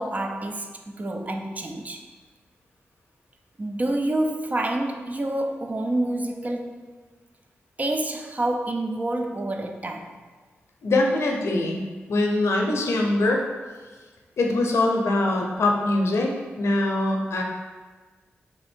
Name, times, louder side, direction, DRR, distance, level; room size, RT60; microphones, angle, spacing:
voice 1, 0.0-2.0 3.6-6.9 7.8-10.1, right 1 dB, 35° right, 4 dB, 0.4 m, -28 dB
voice 2, 10.8-11.8 12.1-13.4 14.4-16.3 16.6-17.4, left 2 dB, 75° left, 0 dB, 0.6 m, -22 dB
3.4 x 2.5 x 4.3 m, 1.4 s
cardioid pair, 50°, 5 cm